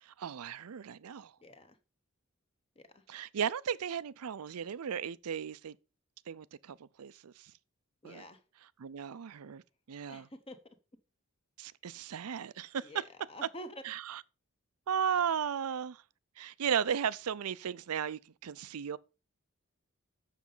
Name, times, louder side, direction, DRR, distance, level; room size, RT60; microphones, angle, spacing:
voice 1, 0.0-1.3 3.1-5.8 6.3-7.5 8.0-8.2 8.8-9.6 9.9-10.3 11.6-13.0 13.8-14.2 14.9-16.0 16.4-19.0, right 8 dB, 85° right, 0.5 m, -35 dB
voice 2, 1.4-1.8 2.8-3.0 8.0-8.4 10.1-10.6 12.8-13.8, equal, 25° left, 1.1 m, -48 dB
7.3 x 6.6 x 5.5 m
head